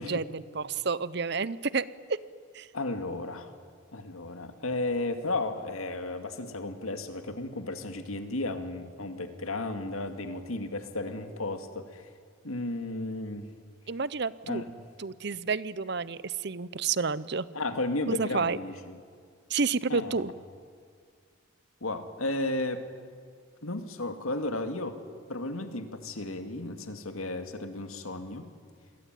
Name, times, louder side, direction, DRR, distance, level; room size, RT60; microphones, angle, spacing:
voice 1, 0.0-1.9 2.5-2.7 13.9-14.6 15.0-17.5 18.1-18.6 19.5-20.3, right 4 dB, 55° right, 18 dB, 0.7 m, -30 dB
voice 2, 2.7-3.5 3.9-12.1 12.4-13.5 14.4-14.8 17.5-19.0 19.9-20.2 21.8-22.8 23.6-25.0 25.3-28.5, left 2 dB, 90° left, 8 dB, 2.3 m, -34 dB
28.0 x 21.5 x 9.2 m, 2.1 s
head